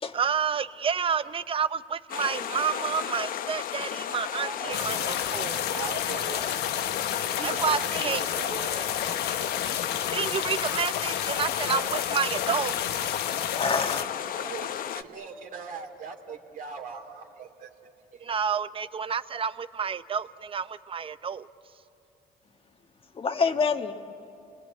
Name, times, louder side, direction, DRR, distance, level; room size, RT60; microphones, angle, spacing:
voice 1, 0.1-5.6 7.4-8.2 10.1-12.7 18.2-21.5, right 7 dB, 30° right, 14 dB, 0.7 m, -29 dB
sound 1, 2.1-15.0, left 10 dB, 55° left, 0.8 m, -34 dB
voice 2, 4.4-5.2 5.7-6.4 7.3-9.0 14.3-17.7 18.1-18.3, right 5 dB, 55° right, 3 dB, 2.4 m, -40 dB
sound 2, 4.7-14.0, left 10 dB, 75° left, 1.1 m, -31 dB
voice 3, 13.4-14.1 23.1-23.9, left 5 dB, 35° left, 6 dB, 1.5 m, -26 dB
29.0 x 20.5 x 8.5 m, 2.8 s
cardioid pair, 110°, 17 cm